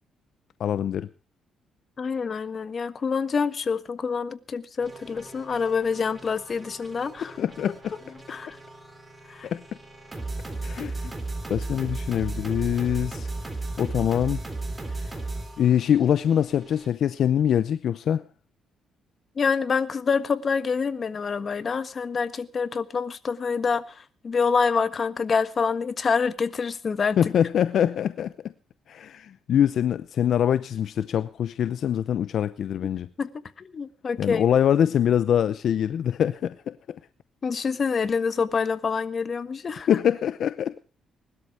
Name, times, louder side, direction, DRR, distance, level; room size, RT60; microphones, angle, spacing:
voice 1, 0.6-1.1 7.2-7.9 9.4-9.6 10.6-11.1 11.5-13.3 13.8-14.4 14.9-15.1 15.6-18.2 27.2-28.3 28.9-33.1 34.2-36.7 39.9-40.7, left 9 dB, 65° left, 14 dB, 0.7 m, -24 dB
voice 2, 2.0-7.4 8.3-8.6 9.3-9.5 19.3-27.3 33.2-34.4 37.4-39.9, left 5 dB, 40° left, 12 dB, 1.5 m, -26 dB
sound 1, 4.8-16.9, right 2 dB, 20° right, 3.7 m, -36 dB
20.5 x 12.5 x 4.8 m, 0.35 s
cardioid pair, 90°, 0 cm